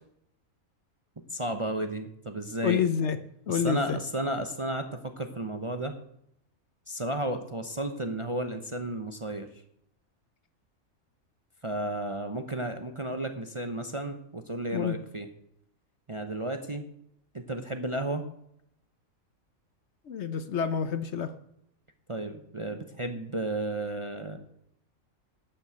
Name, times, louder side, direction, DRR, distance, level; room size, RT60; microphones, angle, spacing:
voice 1, 1.3-2.8 3.5-6.0 6.9-9.5 11.6-15.3 16.1-16.9 17.3-18.2 22.1-24.4, right 1 dB, 30° right, 6 dB, 0.7 m, -33 dB
voice 2, 2.6-3.2 3.5-4.0 14.7-15.0 20.1-21.3, left 7 dB, 60° left, 11 dB, 0.9 m, -28 dB
11.5 x 6.1 x 7.9 m, 0.74 s
omnidirectional pair, 1.5 m